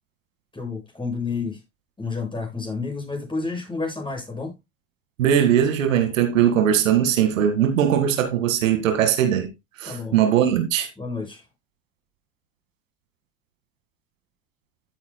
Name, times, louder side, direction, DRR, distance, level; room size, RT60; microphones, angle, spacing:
voice 1, 0.5-1.6 2.0-4.5 9.8-10.2 11.0-11.4, left 4 dB, 10° left, 7.2 m, -30 dB
voice 2, 5.2-9.5 9.8-10.9, right 9 dB, 80° right, 2.1 m, -20 dB
14.0 x 8.3 x 2.2 m
hypercardioid pair, 75°, 39 cm